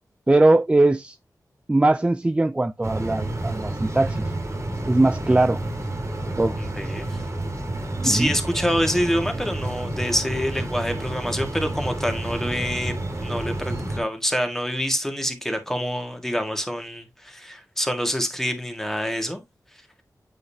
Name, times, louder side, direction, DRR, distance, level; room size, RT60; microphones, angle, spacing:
voice 1, 0.3-1.2 1.7-4.2 4.9-5.6 6.4-6.6 8.0-8.4, right 2 dB, 15° right, 0.4 m, -20 dB
sound 1, 2.8-14.0, right 1 dB, 45° right, 1.9 m, -30 dB
voice 2, 6.6-7.2 8.0-12.9 13.2-19.4, equal, 5° left, 1.7 m, -26 dB
8.2 x 5.2 x 2.8 m
wide cardioid pair, 80°, 7 cm